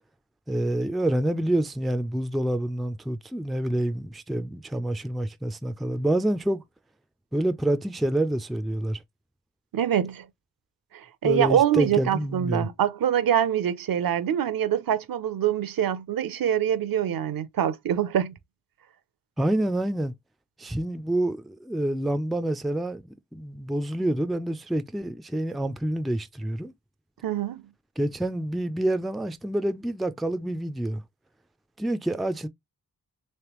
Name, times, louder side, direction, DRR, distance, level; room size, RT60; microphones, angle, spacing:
voice 1, 0.5-6.6 7.3-9.0 11.2-12.7 19.4-20.1 20.6-26.7 28.0-31.0 31.8-32.5, right 1 dB, ahead, 0.4 m, -27 dB
voice 2, 9.7-10.3 10.9-18.3 27.2-27.7, right 9 dB, 75° right, 0.7 m, -25 dB
3.2 x 3.2 x 3.0 m
cardioid pair, 60°, 35 cm